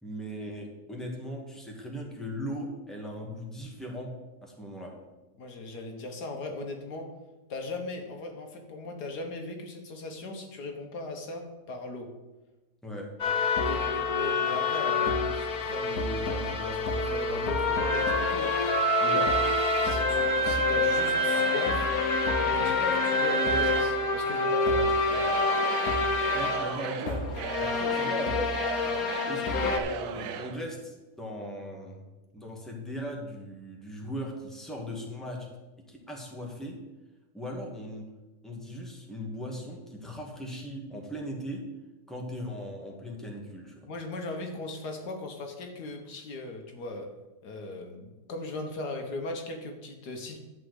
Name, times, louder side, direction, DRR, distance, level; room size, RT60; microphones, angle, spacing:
voice 1, 0.0-4.2 4.4-4.9 12.8-13.1 19.0-19.2 24.7-25.2 26.3-27.3 27.6-28.7 29.3-32.0 32.3-35.5 35.9-36.8 37.3-38.0 38.4-41.6 42.1-43.9, equal, ahead, -1 dB, 1.8 m, -38 dB
voice 2, 5.4-7.1 7.5-12.1 13.6-18.6 19.0-19.3 19.8-21.9 22.4-24.8 43.9-47.1 47.4-50.4, left 2 dB, 85° left, 3 dB, 2.0 m, -38 dB
sound 1, 13.2-29.8, left 2 dB, 65° left, 1.6 m, -27 dB
Singing / Crowd, 25.0-30.6, right 8 dB, 80° right, 1.2 m, -37 dB
11.5 x 4.8 x 8.1 m, 1.1 s
omnidirectional pair, 1.7 m